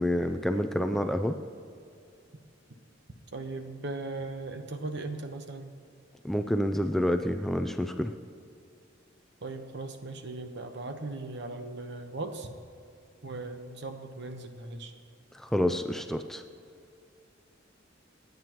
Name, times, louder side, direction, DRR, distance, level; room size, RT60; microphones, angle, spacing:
voice 1, 0.0-1.4 6.2-8.1 15.4-16.4, equal, ahead, 6 dB, 0.4 m, -28 dB
voice 2, 3.3-5.7 9.4-12.6 13.2-14.9, right 2 dB, 65° right, 6 dB, 1.1 m, -38 dB
27.5 x 9.4 x 3.0 m, 2.5 s
head